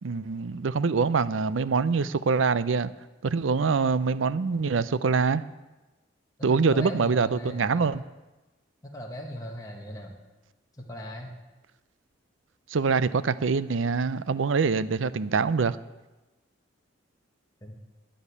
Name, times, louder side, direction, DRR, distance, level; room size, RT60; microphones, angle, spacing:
voice 1, 0.0-2.9 3.2-5.4 6.4-8.0 12.7-15.8, right 5 dB, 85° right, 16 dB, 0.5 m, -24 dB
voice 2, 6.4-7.9 8.8-10.2 10.8-11.3 17.6-17.7, equal, 20° left, -2 dB, 1.5 m, -39 dB
10.5 x 10.0 x 8.4 m, 1.1 s
head